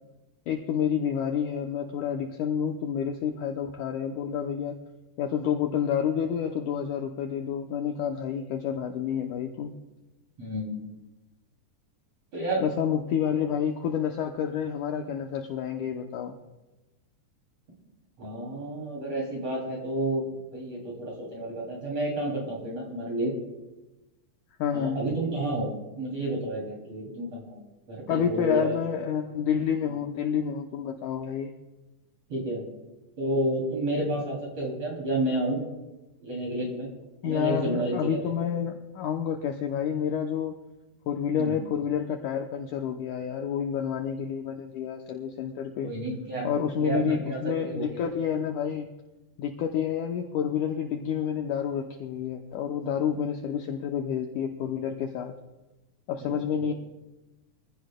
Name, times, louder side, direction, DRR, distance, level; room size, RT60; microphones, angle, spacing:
voice 1, 0.5-4.8 5.2-9.7 12.6-16.4 24.6-25.0 28.1-31.5 37.2-40.6 41.1-45.9 46.4-48.9 49.4-55.3 56.1-56.7, left 8 dB, 75° left, 4 dB, 1.9 m, -29 dB
voice 2, 10.4-10.9 12.3-12.6 18.2-20.3 20.5-23.3 24.7-25.7 26.0-27.6 27.9-28.7 32.3-32.7 33.2-35.6 36.2-36.9 37.2-38.2 41.4-41.6 45.8-46.5 46.8-48.0 56.2-56.4 56.7-56.8, right 1 dB, 45° right, -2 dB, 3.8 m, -30 dB
24.0 x 15.0 x 2.2 m, 1.0 s
omnidirectional pair, 4.2 m